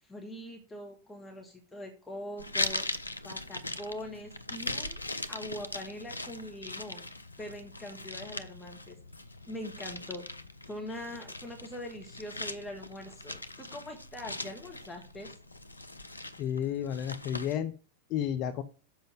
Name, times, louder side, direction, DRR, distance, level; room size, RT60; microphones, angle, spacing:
voice 1, 0.0-2.8 3.2-5.0 5.3-7.1 7.4-9.0 9.5-10.2 10.7-15.4, left 1 dB, 10° left, 1 dB, 1.6 m, -42 dB
sound 1, 2.4-17.6, left 2 dB, 85° left, 0.5 m, -40 dB
voice 2, 16.4-17.7 18.1-18.6, left 9 dB, 40° left, 10 dB, 0.6 m, -31 dB
7.3 x 5.2 x 7.2 m, 0.38 s
figure-of-eight pair, 90°, 0 cm